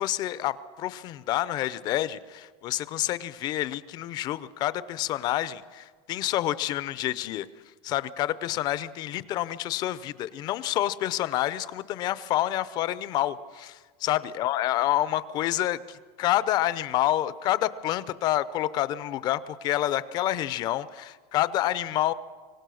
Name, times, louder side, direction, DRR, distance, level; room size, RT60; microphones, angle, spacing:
voice 1, 0.0-7.5 7.8-22.1, left 13 dB, 35° left, 17 dB, 0.6 m, -28 dB
25.0 x 17.5 x 6.4 m, 1.5 s
cardioid pair, 170°, 12 cm